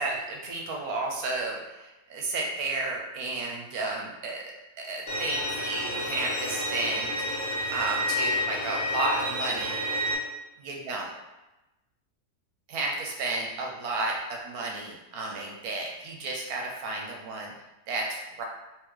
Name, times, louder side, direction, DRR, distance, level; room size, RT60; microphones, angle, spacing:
voice 1, 0.0-4.4 4.8-7.1 7.7-9.8 10.6-11.1 12.7-17.5 17.9-18.4, right 2 dB, 70° right, 0 dB, 1.0 m, -32 dB
Bowed string instrument, 5.1-10.1, equal, 60° left, 1.2 m, -30 dB
3.6 x 2.9 x 3.1 m, 1.0 s
omnidirectional pair, 1.8 m